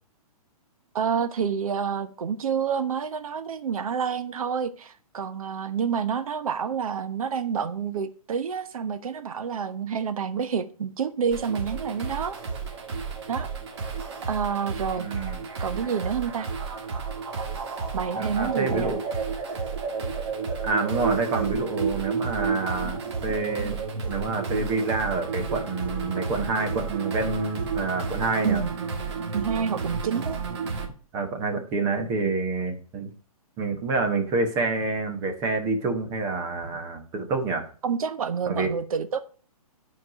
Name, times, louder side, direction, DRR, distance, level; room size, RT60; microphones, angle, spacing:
voice 1, 0.9-12.4 13.3-13.5 14.3-15.1 15.6-16.5 17.9-19.0 28.4-28.7 29.3-30.4 37.8-39.2, right 7 dB, 65° right, 11 dB, 1.2 m, -28 dB
sound 1, 11.3-30.9, right 5 dB, 45° right, 1.9 m, -31 dB
voice 2, 15.0-15.4 18.2-19.0 20.6-23.8 24.1-28.6 31.1-33.1 33.6-37.6 38.5-38.7, right 3 dB, 15° right, 5 dB, 1.2 m, -27 dB
11.0 x 4.8 x 6.1 m, 0.41 s
hypercardioid pair, 170°, 19 cm